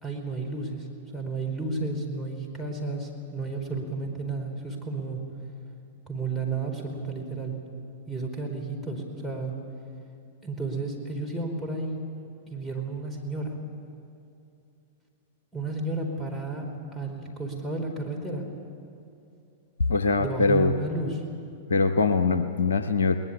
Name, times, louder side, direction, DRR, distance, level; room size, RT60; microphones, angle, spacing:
voice 1, 0.0-5.3 6.1-7.5 8.1-9.6 10.4-12.0 12.5-13.5 15.5-16.7 16.9-18.5 20.2-21.2, right 3 dB, 5° left, 1 dB, 4.6 m, -32 dB
voice 2, 19.9-20.7 21.7-23.2, left 4 dB, 70° left, 10 dB, 0.8 m, -22 dB
22.0 x 19.5 x 8.6 m, 2.6 s
figure-of-eight pair, 100°, 0 cm